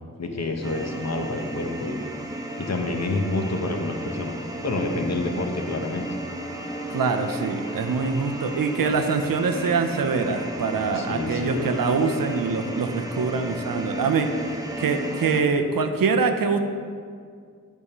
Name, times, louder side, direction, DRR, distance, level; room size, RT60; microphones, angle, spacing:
voice 1, 0.2-2.0 2.6-4.3 4.6-6.1 10.9-11.7, left 2 dB, 55° left, 3 dB, 0.9 m, -28 dB
sound 1, 0.6-15.4, right 1 dB, 10° right, 0.9 m, -33 dB
voice 2, 6.9-14.3 14.8-16.6, right 4 dB, 85° right, 6 dB, 0.6 m, -24 dB
8.3 x 3.6 x 5.4 m, 2.1 s
cardioid pair, 40°, 33 cm